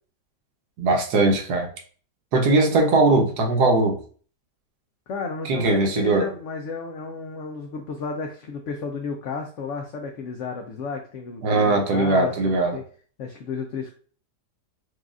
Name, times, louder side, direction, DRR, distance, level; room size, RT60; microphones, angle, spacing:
voice 1, 0.8-1.7 2.3-4.0 5.4-6.3 11.4-12.8, right 2 dB, 70° right, 3 dB, 1.4 m, -20 dB
voice 2, 2.4-2.8 5.1-12.8 13.2-13.9, left 4 dB, 80° left, 3 dB, 0.6 m, -32 dB
6.2 x 2.3 x 2.4 m, 0.44 s
omnidirectional pair, 1.8 m